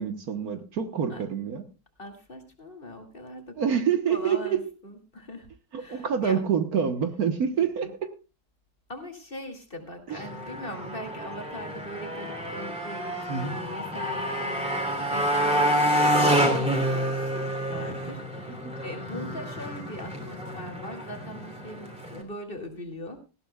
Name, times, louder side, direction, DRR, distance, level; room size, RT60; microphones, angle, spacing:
voice 1, 0.0-1.6 3.6-4.6 5.7-8.1 10.1-10.2 13.3-13.6 18.5-18.7, right 7 dB, 65° right, 8 dB, 1.6 m, -27 dB
voice 2, 2.0-3.8 4.1-5.5 5.8-6.4 7.5-7.9 8.9-13.1 13.4-23.2, left 1 dB, 30° left, 4 dB, 2.5 m, -41 dB
Motorcycle, 10.1-22.2, equal, 5° right, 2.8 m, -28 dB
18.5 x 15.5 x 2.3 m, 0.30 s
omnidirectional pair, 1.8 m